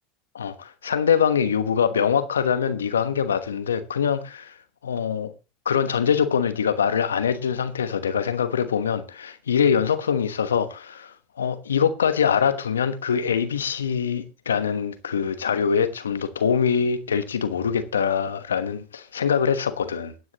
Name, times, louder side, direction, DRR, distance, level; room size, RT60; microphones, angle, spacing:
voice 1, 0.3-4.5 4.8-5.3 5.6-20.1, left 7 dB, 90° left, 1.1 m, -23 dB
22.5 x 9.4 x 3.0 m
hypercardioid pair, 85°, 0 cm